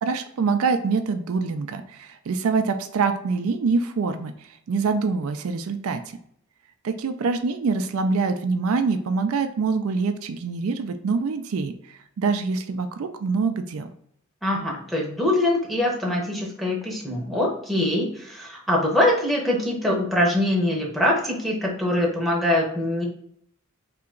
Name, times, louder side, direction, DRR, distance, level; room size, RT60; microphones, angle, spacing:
voice 1, 0.0-4.3 4.7-6.2 6.8-13.9, right 4 dB, 70° right, 7 dB, 0.4 m, -25 dB
voice 2, 14.4-23.0, left 1 dB, ahead, -3 dB, 0.8 m, -23 dB
3.3 x 2.9 x 3.7 m, 0.68 s
head